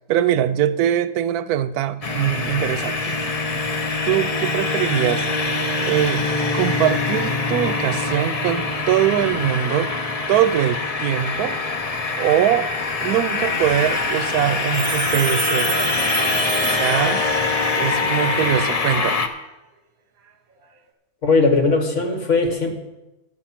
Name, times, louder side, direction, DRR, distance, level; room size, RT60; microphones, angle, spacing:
voice 1, 0.1-3.2 4.0-5.3 5.8-6.3 6.5-9.9 10.3-11.6 12.2-12.7 13.0-16.0 16.7-17.3 17.8-19.3, right 11 dB, 90° right, 15 dB, 1.1 m, -22 dB
sound 1, 2.0-19.3, left 3 dB, 35° left, 0.6 m, -23 dB
Telephone, 14.7-17.6, right 7 dB, 70° right, 1.6 m, -28 dB
voice 2, 21.2-22.7, left 3 dB, 55° left, 3 dB, 2.0 m, -18 dB
11.0 x 8.8 x 5.9 m, 1.0 s
omnidirectional pair, 1.6 m